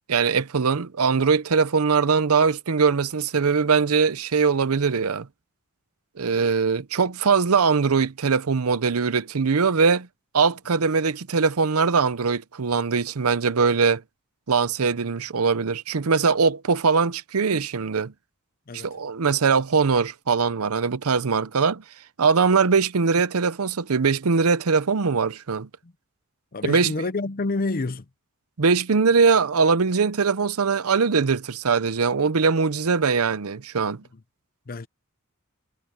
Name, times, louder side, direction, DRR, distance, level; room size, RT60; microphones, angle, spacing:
voice 1, 0.1-5.3 6.2-10.1 10.3-14.0 14.5-18.1 18.7-21.8 22.2-25.7 26.6-27.1 28.6-34.0, right 5 dB, 85° right, 0.7 m, -21 dB
voice 2, 26.5-28.0 34.7-34.9, left 3 dB, 40° left, 0.7 m, -28 dB
head